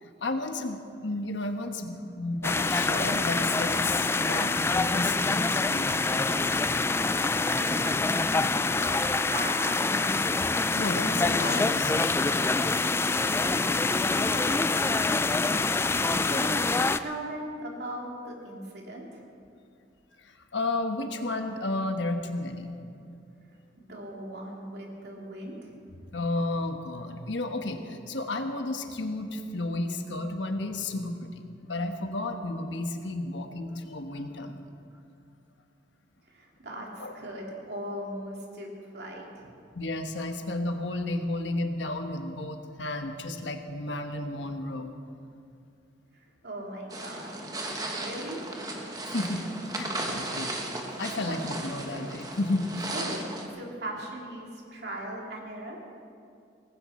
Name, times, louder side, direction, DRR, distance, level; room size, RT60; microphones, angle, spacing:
voice 1, 0.0-6.4 10.7-12.6 13.9-14.2 20.2-22.8 26.1-31.3 31.6-34.7 37.0-37.1 39.7-44.9 49.0-50.6 51.0-52.7, left 2 dB, 80° left, 5 dB, 1.2 m, -32 dB
sound 1, 2.4-17.0, left 3 dB, 15° left, 0.3 m, -26 dB
voice 2, 7.5-8.4 8.7-9.0 9.3-10.3 14.2-14.6 16.2-19.2 23.8-25.7 36.3-39.5 46.4-48.5 51.3-51.4 52.9-55.8, right 1 dB, 60° right, -1 dB, 2.8 m, -39 dB
sound 2, 46.9-53.5, right 2 dB, 20° right, 1.4 m, -36 dB
18.5 x 16.0 x 4.3 m, 2.5 s
head